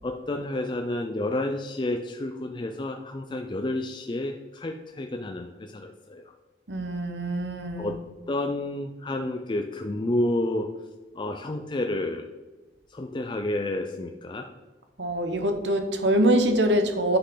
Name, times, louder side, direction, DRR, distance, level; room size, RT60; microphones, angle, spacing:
voice 1, 0.0-6.2 7.8-8.0 8.3-10.7 11.1-12.3 12.9-14.5, left 1 dB, 25° left, 4 dB, 0.5 m, -30 dB
voice 2, 6.7-7.9 15.0-17.2, right 1 dB, 85° right, 6 dB, 1.1 m, -24 dB
9.7 x 5.9 x 3.9 m, 1.2 s
head